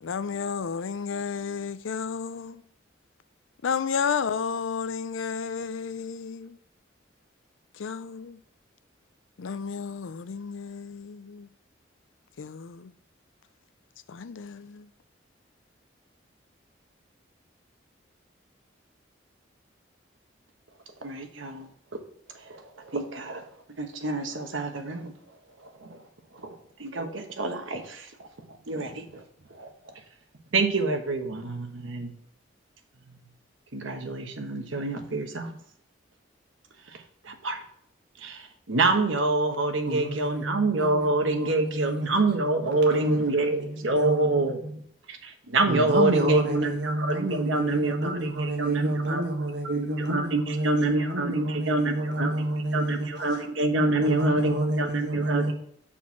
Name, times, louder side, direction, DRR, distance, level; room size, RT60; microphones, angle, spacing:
voice 1, 0.0-2.6 3.6-6.6 7.7-8.4 9.4-11.5 12.4-12.9 14.1-14.9, left 6 dB, 90° left, 0.5 m, -32 dB
voice 2, 21.0-21.7 22.4-23.5 23.8-25.1 25.6-26.0 26.3-28.1 28.5-29.2 29.5-29.7 30.5-32.2 33.1-33.2 33.7-35.6 37.2-37.6 38.2-44.6 45.1-49.2 49.6-52.3 52.7-55.4, right 2 dB, 85° right, 1.2 m, -27 dB
voice 3, 39.9-42.1 42.9-44.4 45.7-53.3 54.0-55.5, right 1 dB, 60° right, 1.5 m, -30 dB
6.4 x 4.5 x 5.8 m
head